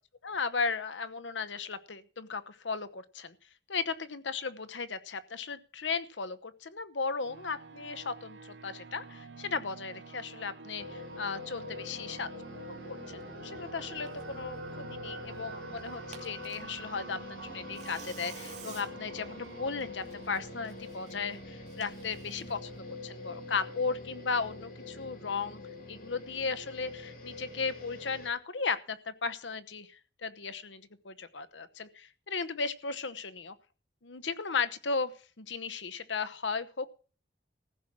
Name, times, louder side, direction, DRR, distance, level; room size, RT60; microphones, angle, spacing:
voice 1, 0.2-3.3 3.7-12.3 12.9-25.6 25.9-33.5 34.0-36.9, left 5 dB, 80° left, 13 dB, 1.0 m, -36 dB
sound 1, 7.2-22.6, right 4 dB, 65° right, 0.7 m, -48 dB
sound 2, 10.8-28.3, left 3 dB, 50° left, 3.3 m, -45 dB
Tearing, 13.2-22.8, right 6 dB, 40° right, 2.5 m, -55 dB
15.0 x 6.1 x 7.3 m, 0.38 s
head